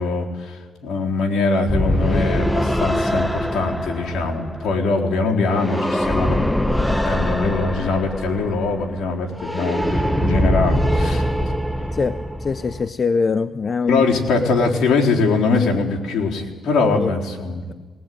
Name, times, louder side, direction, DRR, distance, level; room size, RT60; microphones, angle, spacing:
voice 1, 0.0-6.5 7.0-11.2 13.9-17.6, left 3 dB, 70° left, 4.0 m, -22 dB
sound 1, 1.7-12.9, equal, 5° left, 1.2 m, -23 dB
voice 2, 11.9-14.0 16.9-17.1, left 5 dB, 40° left, 0.6 m, -22 dB
20.5 x 18.5 x 9.5 m
cardioid pair, 90°, 0 cm